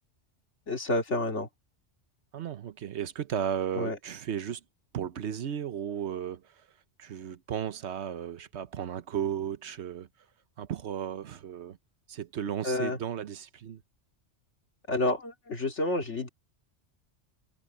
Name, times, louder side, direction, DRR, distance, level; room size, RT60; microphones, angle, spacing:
voice 1, 0.7-1.5 3.7-4.0 12.6-13.0 14.9-16.3, left 2 dB, 70° left, 2.6 m, -29 dB
voice 2, 2.3-4.6 4.9-6.5 7.0-10.1 10.6-11.8 12.1-13.8, right 9 dB, 65° right, 1.1 m, -34 dB
omnidirectional pair, 1.2 m